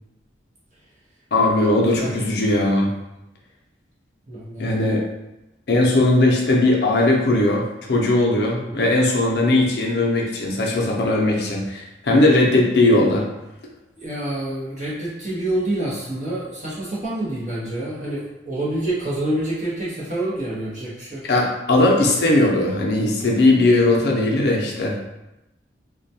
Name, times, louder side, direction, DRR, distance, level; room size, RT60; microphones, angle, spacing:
voice 1, 1.3-2.9 4.6-5.0 5.7-13.3 21.2-24.9, left 2 dB, 60° left, -1 dB, 0.5 m, -18 dB
voice 2, 4.3-4.7 8.6-8.8 14.0-21.2, right 1 dB, 40° right, -7 dB, 0.8 m, -27 dB
2.2 x 2.2 x 2.7 m, 0.95 s
head